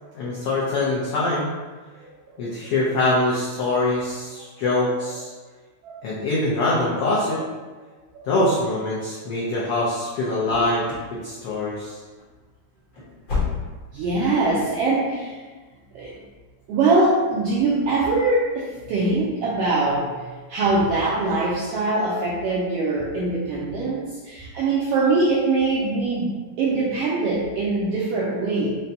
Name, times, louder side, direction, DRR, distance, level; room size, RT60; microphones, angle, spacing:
voice 1, 0.1-1.5 2.4-5.3 6.0-7.4 8.2-10.8 11.1-12.0, left 2 dB, 85° left, -6 dB, 1.2 m, -23 dB
voice 2, 2.0-2.7 5.8-6.0 8.1-8.3 13.9-15.4 15.9-16.2 16.7-28.8, right 3 dB, 85° right, -5 dB, 1.3 m, -23 dB
sound 1, 10.4-11.2 11.4-11.9 12.2-12.3 12.8-14.0 14.3-14.4 14.9-15.1, left 5 dB, 60° left, 1.4 m, -30 dB
5.3 x 2.2 x 2.7 m, 1.3 s
omnidirectional pair, 3.3 m